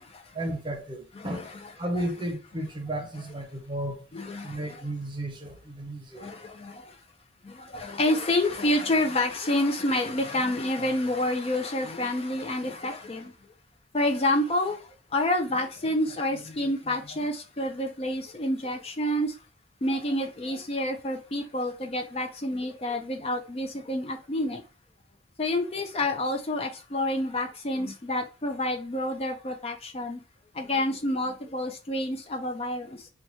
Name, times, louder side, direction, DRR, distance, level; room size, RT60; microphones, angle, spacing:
voice 1, 0.3-4.0 4.4-6.3, right 1 dB, 25° right, 0.7 m, -34 dB
voice 2, 1.2-1.7 4.1-4.8 6.1-7.0 7.4-13.3 13.9-19.4 19.8-24.6 25.4-30.2 30.5-33.1, left 1 dB, 35° left, 0.4 m, -28 dB
2.9 x 2.3 x 4.2 m
head